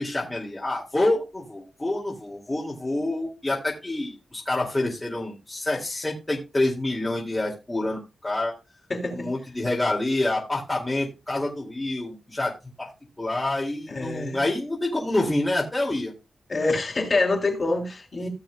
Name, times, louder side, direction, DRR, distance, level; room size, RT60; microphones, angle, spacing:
voice 1, 0.0-8.5 9.1-12.5 12.8-12.9 13.2-16.1, left 2 dB, 15° left, 2.3 m, -27 dB
voice 2, 8.9-9.3 13.9-14.4 16.5-18.3, left 2 dB, 35° left, 3.1 m, -26 dB
16.0 x 7.4 x 2.3 m
wide cardioid pair, 110°, 0 cm